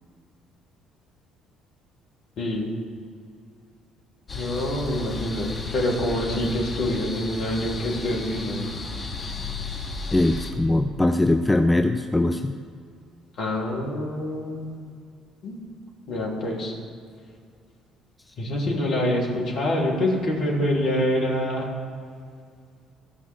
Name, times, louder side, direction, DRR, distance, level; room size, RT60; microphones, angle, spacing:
voice 1, 2.4-2.7 4.3-8.7 13.4-14.8 15.4-15.6 16.1-16.7 18.4-21.7, left 1 dB, 55° left, -2 dB, 2.9 m, -26 dB
sound 1, 4.3-10.5, left 3 dB, 30° left, 1.8 m, -34 dB
voice 2, 10.1-12.5, left 2 dB, 15° left, 7 dB, 0.6 m, -21 dB
13.5 x 5.6 x 7.9 m, 2.2 s
figure-of-eight pair, 50°, 0 cm